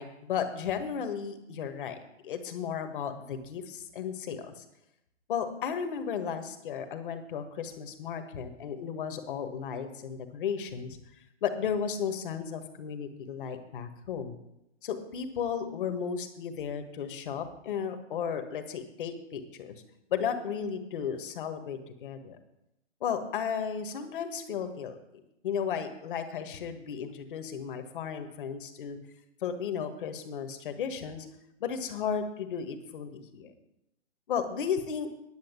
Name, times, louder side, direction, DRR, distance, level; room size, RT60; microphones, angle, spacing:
voice 1, 0.0-2.0 2.2-4.6 5.3-11.0 11.4-14.3 14.8-19.8 20.1-22.4 23.0-25.0 25.4-29.0 29.4-31.3 31.6-33.5 34.3-35.1, left 7 dB, 45° left, 8 dB, 1.6 m, -34 dB
10.5 x 6.8 x 8.2 m, 0.85 s
hypercardioid pair, 155°, 36 cm